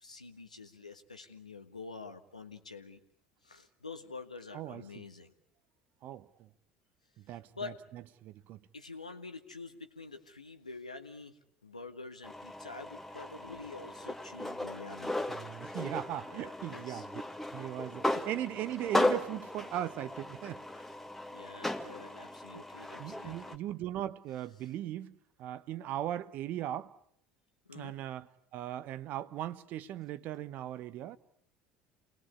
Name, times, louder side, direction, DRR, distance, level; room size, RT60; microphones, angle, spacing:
voice 1, 0.0-3.0 3.4-5.3 7.5-7.8 8.7-15.1 16.3-17.1 20.7-20.9 21.3-23.6 27.7-28.0, left 4 dB, 90° left, 1.5 m, -47 dB
voice 2, 4.5-5.0 6.0-6.5 7.3-8.6 15.3-17.1 17.5-20.6 23.0-26.9 27.7-28.3 28.5-31.2, right 12 dB, 50° right, 1.0 m, -39 dB
sound 1, 12.2-23.6, left 1 dB, 5° left, 1.7 m, -36 dB
28.5 x 19.5 x 8.4 m
figure-of-eight pair, 65°, 4 cm